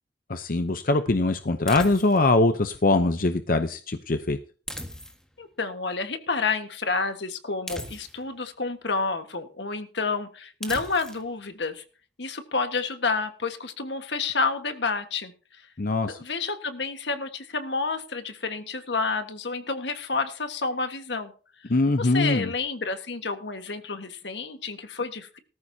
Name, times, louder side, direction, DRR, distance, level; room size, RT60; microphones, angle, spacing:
voice 1, 0.3-4.4 15.8-16.2 21.7-22.5, left 2 dB, 50° left, 8 dB, 0.7 m, -22 dB
sound 1, 1.7-2.3 4.7-5.4 7.7-8.4 10.6-11.3, equal, 5° left, 1.6 m, -38 dB
voice 2, 5.4-11.8 12.2-15.3 16.1-21.3 22.0-25.4, left 4 dB, 80° left, 7 dB, 1.5 m, -29 dB
18.5 x 14.0 x 2.8 m, 0.38 s
head